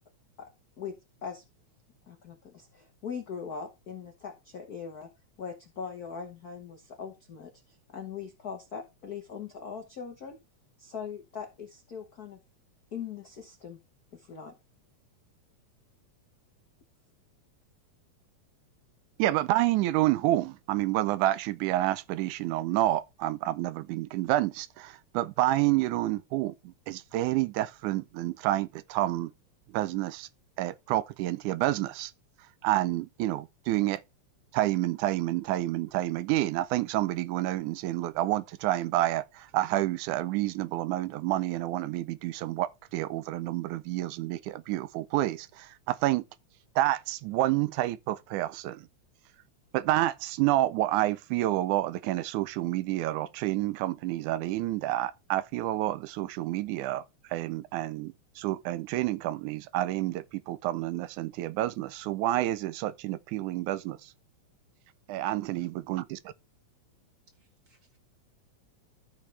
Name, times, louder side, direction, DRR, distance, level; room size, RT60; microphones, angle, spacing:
voice 1, 0.8-1.4 2.1-5.1 5.4-10.4 10.8-12.4 12.9-13.8 14.1-14.5, left 6 dB, 70° left, 0.9 m, -41 dB
voice 2, 19.2-29.3 29.7-30.3 30.6-32.1 32.6-34.0 34.5-46.2 46.8-48.9 49.7-57.0 57.3-64.1 65.1-66.2, right 15 dB, 90° right, 2.1 m, -29 dB
voice 3, 67.3-68.0, right 2 dB, 35° right, 2.4 m, -71 dB
13.5 x 5.2 x 3.3 m
omnidirectional pair, 3.4 m